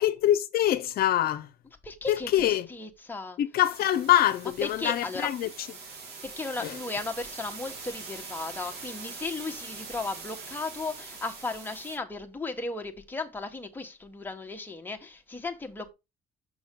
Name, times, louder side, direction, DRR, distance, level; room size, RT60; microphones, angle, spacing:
voice 1, 0.0-1.5 2.1-2.7 3.4-5.5 6.6-6.8, left 12 dB, 65° left, 0.7 m, -24 dB
voice 2, 1.8-3.4 4.6-5.3 6.2-15.9, left 3 dB, 10° left, 1.3 m, -35 dB
sound 1, 3.6-12.0, right 4 dB, 75° right, 3.1 m, -43 dB
6.4 x 6.2 x 3.7 m
cardioid pair, 110°, 17 cm